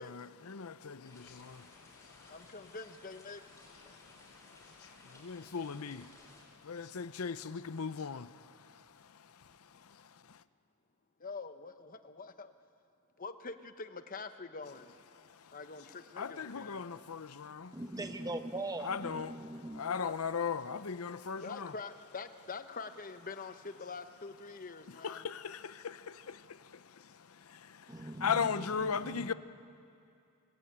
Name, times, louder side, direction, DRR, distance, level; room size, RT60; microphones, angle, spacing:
voice 1, 0.0-2.5 3.8-10.4 15.1-15.6 16.2-17.8 18.8-21.7 24.9-29.3, left 6 dB, 85° left, 0.7 m, -39 dB
voice 2, 0.8-1.3 2.3-3.4 11.2-12.5 13.2-14.9 15.5-16.8 19.8-20.2 21.4-25.2, left 4 dB, 40° left, 1.0 m, -45 dB
sound 1, 1.0-6.4, left 2 dB, 15° left, 5.3 m, -59 dB
voice 3, 17.7-19.8 27.9-29.3, right 1 dB, 15° right, 1.1 m, -41 dB
26.0 x 20.5 x 8.7 m
head